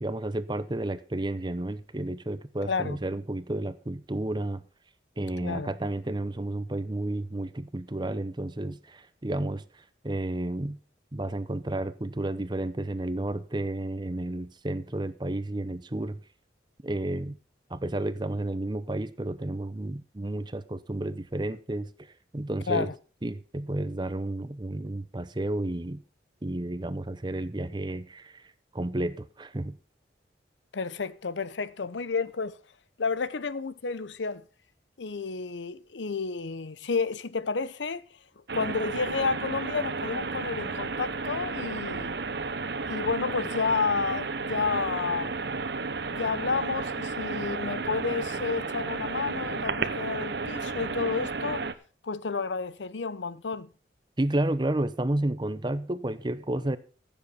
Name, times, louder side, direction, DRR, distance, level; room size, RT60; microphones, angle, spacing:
voice 1, 0.0-4.6 5.2-10.8 11.1-16.2 16.8-17.4 17.7-21.9 22.3-22.9 23.2-26.0 26.4-29.8 54.2-56.8, right 1 dB, 25° right, 0.8 m, -31 dB
voice 2, 2.7-3.0 5.4-5.7 22.7-22.9 30.7-32.6 33.0-34.4 35.0-38.0 38.5-42.2 42.9-45.3 46.1-51.6 52.0-53.7, left 4 dB, 85° left, 0.7 m, -31 dB
sound 1, 38.5-51.7, right 4 dB, 65° right, 0.9 m, -33 dB
15.0 x 7.1 x 5.6 m
head